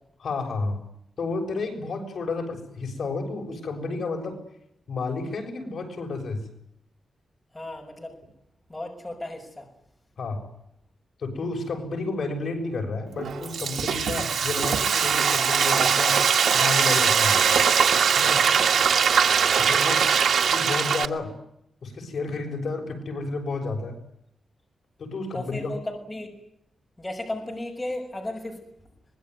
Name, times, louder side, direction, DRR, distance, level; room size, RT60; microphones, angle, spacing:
voice 1, 0.2-0.8 1.2-4.4 4.9-6.5 10.2-10.4 11.2-16.2 16.5-17.5 18.1-18.4 19.6-20.1 20.5-21.3 21.8-24.0 25.0-25.7, left 3 dB, 50° left, 2 dB, 6.9 m, -31 dB
voice 2, 7.5-8.2 8.7-9.7 18.6-19.0 25.3-26.3 27.0-28.6, left 1 dB, 10° left, 1 dB, 6.3 m, -35 dB
Frying (food), 13.2-21.1, right 7 dB, 80° right, 1.7 m, -21 dB
24.5 x 21.5 x 9.6 m, 0.75 s
wide cardioid pair, 175°, 0 cm